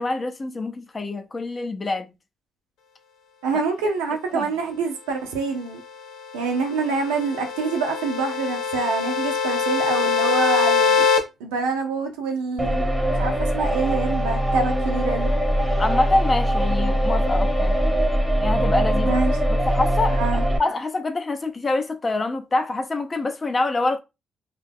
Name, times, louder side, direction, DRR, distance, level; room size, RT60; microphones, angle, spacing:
voice 1, 0.0-2.1 4.3-4.5 15.8-17.7 18.4-19.2 19.5-24.0, left 2 dB, 35° left, 0.5 m, -25 dB
voice 2, 3.4-5.8 6.3-11.1 11.4-12.9 13.2-15.3 19.0-19.3 20.2-20.4, right 4 dB, 85° right, 0.6 m, -26 dB
sound 1, 6.3-11.2, left 5 dB, 80° left, 0.6 m, -23 dB
sound 2, 12.6-20.6, equal, 10° right, 0.8 m, -22 dB
2.3 x 2.0 x 3.4 m
hypercardioid pair, 50°, 0 cm